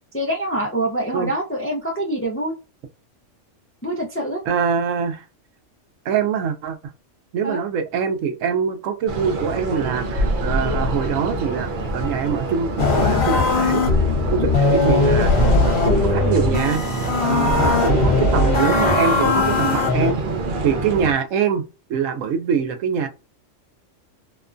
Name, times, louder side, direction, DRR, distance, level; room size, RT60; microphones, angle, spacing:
voice 1, 0.1-2.5 3.8-4.4 7.4-7.6, right 1 dB, 20° left, 0.4 m, -25 dB
voice 2, 4.5-5.2 6.1-6.8 7.3-13.8 14.3-16.8 17.2-20.2 20.6-21.6 21.9-23.1, right 7 dB, 85° right, 1.0 m, -24 dB
sound 1, 9.1-21.1, right 1 dB, 55° right, 0.6 m, -26 dB
sound 2, 12.8-20.1, left 3 dB, 60° left, 1.1 m, -19 dB
2.8 x 2.2 x 2.5 m
omnidirectional pair, 1.3 m